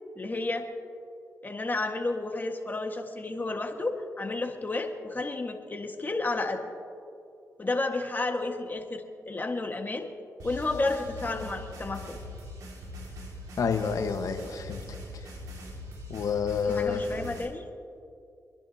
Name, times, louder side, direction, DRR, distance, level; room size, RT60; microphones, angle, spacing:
voice 1, 0.2-0.7 1.4-6.6 7.6-10.1 10.4-12.2 16.7-17.7, left 2 dB, 30° left, 3 dB, 1.6 m, -31 dB
sound 1, 10.4-17.4, left 1 dB, 85° right, 2.2 m, -42 dB
voice 2, 13.6-14.8 16.1-17.0, left 6 dB, 70° left, 5 dB, 1.3 m, -28 dB
26.5 x 10.5 x 2.9 m, 2.5 s
supercardioid pair, 50°, 6 cm